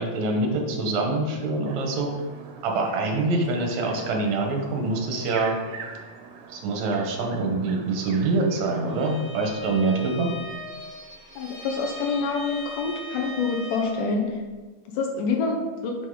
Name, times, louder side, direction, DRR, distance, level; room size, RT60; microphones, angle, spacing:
voice 1, 0.0-2.1 2.6-5.6 6.5-10.3, right 3 dB, 70° right, 1 dB, 2.0 m, -25 dB
sound 1, 1.7-9.3, right 5 dB, 85° right, 2.2 m, -43 dB
Bowed string instrument, 8.9-14.1, left 1 dB, 40° left, 0.6 m, -39 dB
voice 2, 11.4-14.4 14.9-16.0, left 4 dB, 80° left, 2 dB, 2.3 m, -26 dB
5.8 x 5.3 x 3.8 m, 1.3 s
omnidirectional pair, 3.8 m